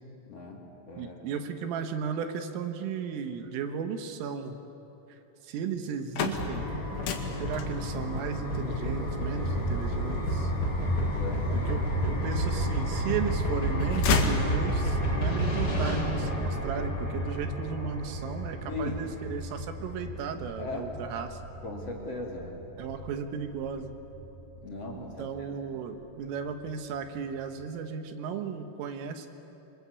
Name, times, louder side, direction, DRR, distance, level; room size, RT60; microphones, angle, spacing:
voice 1, 0.3-0.6 0.9-1.2 11.0-11.5 18.7-19.0 20.6-20.9 21.6-22.6 24.6-25.3, left 3 dB, 40° left, -1 dB, 2.7 m, -38 dB
voice 2, 1.0-4.6 5.4-6.7 7.4-10.5 11.7-21.4 22.8-24.0 25.0-29.3, right 6 dB, 85° right, 6 dB, 4.1 m, -35 dB
sound 1, 5.8-11.8 12.4-13.2 13.5-15.1, left 5 dB, 75° left, 4.3 m, -33 dB
sound 2, 6.3-19.1, equal, 20° left, 4.7 m, -32 dB
sound 3, 9.4-25.4 25.7-25.8 26.1-26.2 26.4-26.7 26.9-27.2 27.6-27.7, equal, 45° right, 3.8 m, -34 dB
27.0 x 25.0 x 8.4 m, 3.0 s
omnidirectional pair, 5.7 m